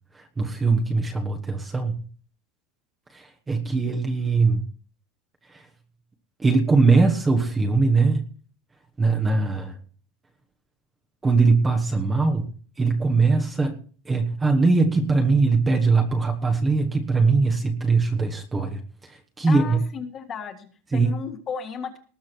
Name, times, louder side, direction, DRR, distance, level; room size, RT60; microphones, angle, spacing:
voice 1, 0.1-2.0 3.1-4.6 5.5-5.6 6.4-8.2 9.0-9.8 11.2-12.5 12.8-13.7 14.0-18.8 19.1-19.8 20.9-21.1, right 4 dB, 10° right, 3 dB, 1.2 m, -21 dB
voice 2, 19.4-22.0, left 6 dB, 20° left, 7 dB, 1.7 m, -34 dB
19.5 x 7.1 x 4.6 m, 0.41 s
supercardioid pair, 175°, 0 cm